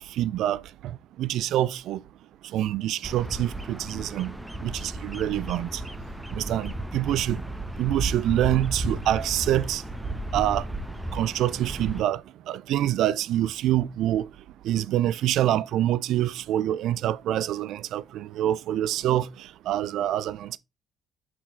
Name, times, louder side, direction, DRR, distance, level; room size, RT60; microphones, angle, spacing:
voice 1, 0.2-0.9 1.2-2.0 2.5-4.3 4.6-5.8 6.3-7.4 7.8-9.8 10.3-10.6 11.1-12.2 12.5-14.3 14.6-19.3 19.7-20.6, right 12 dB, 60° right, 0.4 m, -26 dB
Bird vocalization bird call bird song, 3.0-12.0, right 1 dB, 10° right, 1.0 m, -34 dB
6.1 x 5.9 x 3.7 m
figure-of-eight pair, 45°, 0 cm